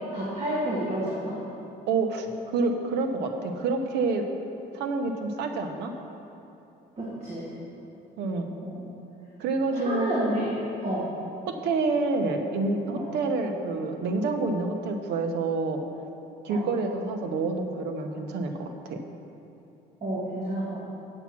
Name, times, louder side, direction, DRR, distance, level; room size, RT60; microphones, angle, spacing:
voice 1, 0.1-1.3 7.0-7.5 8.6-8.9 9.7-10.5 10.8-11.1 13.0-13.1 16.5-16.7 20.0-20.8, right 1 dB, 40° right, -6 dB, 1.8 m, -30 dB
voice 2, 1.9-4.2 4.7-5.9 8.2-8.5 9.4-10.1 11.6-15.8 16.4-19.0, right 3 dB, 80° right, 5 dB, 0.9 m, -28 dB
7.9 x 7.1 x 5.9 m, 2.9 s
cardioid pair, 110°, 17 cm